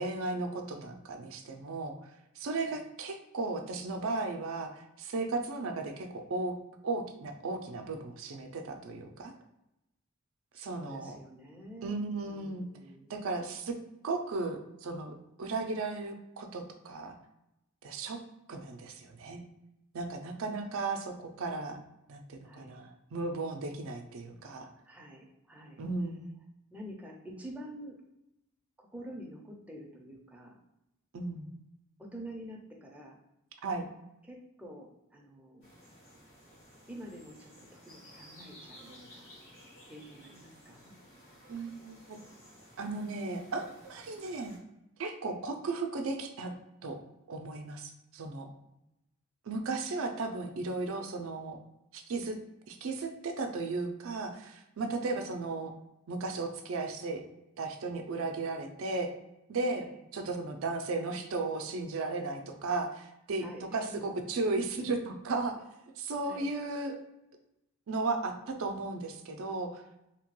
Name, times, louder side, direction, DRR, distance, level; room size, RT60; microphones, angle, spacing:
voice 1, 0.0-2.0 2.4-6.6 6.8-9.3 10.5-11.2 11.8-12.7 13.1-13.8 14.0-17.1 17.8-18.2 18.5-19.4 19.9-21.8 22.1-24.7 25.8-26.3 31.1-31.5 33.6-33.8 41.5-42.2 42.8-44.6 45.0-46.5 46.8-47.0 47.3-48.5 49.5-51.6 51.9-52.4 52.7-55.7 56.1-57.2 57.6-59.1 59.5-63.4 63.7-65.6 66.0-67.0 67.9-69.8, right 3 dB, 70° right, 5 dB, 0.4 m, -35 dB
voice 2, 10.5-13.2 22.4-22.8 24.9-25.8 26.7-28.0 28.8-30.6 32.0-33.2 34.2-35.7 36.9-39.3 39.8-40.9 55.0-55.2 59.8-60.0 63.4-64.1 66.3-66.5, equal, 5° right, -1 dB, 0.5 m, -48 dB
sound 1, 35.6-44.6, equal, 60° left, 1.4 m, -55 dB
2.8 x 2.2 x 3.0 m, 0.90 s
head